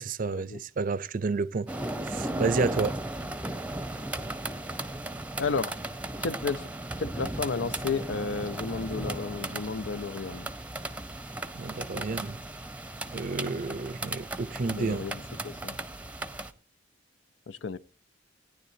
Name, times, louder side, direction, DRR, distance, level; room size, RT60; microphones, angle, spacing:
voice 1, 0.0-1.7 2.0-3.0 11.5-12.4 13.1-15.1, right 4 dB, 45° right, 0.5 m, -30 dB
sound 1, 1.7-16.5, right 2 dB, 5° right, 0.7 m, -36 dB
voice 2, 2.4-2.7 5.4-5.7 6.2-6.7 7.0-10.5 11.9-12.2 14.6-15.8 17.5-17.8, left 4 dB, 75° left, 0.6 m, -33 dB
17.5 x 10.0 x 2.7 m
head